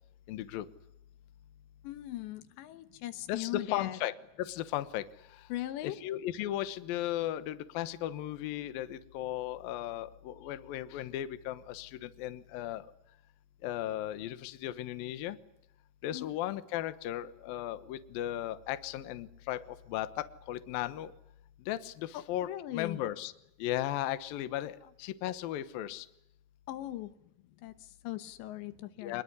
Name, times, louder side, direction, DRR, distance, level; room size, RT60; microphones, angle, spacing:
voice 1, 0.3-0.7 3.3-5.0 5.8-12.9 13.6-15.4 16.0-19.6 19.9-21.1 21.7-23.3 23.6-26.1 29.0-29.2, left 13 dB, 70° left, 13 dB, 2.6 m, -36 dB
voice 2, 1.8-4.0 5.5-6.0 16.1-16.3 22.1-23.0 26.7-27.1 27.6-29.2, left 15 dB, 90° left, 11 dB, 3.6 m, -39 dB
25.0 x 21.5 x 9.8 m, 0.81 s
omnidirectional pair, 5.0 m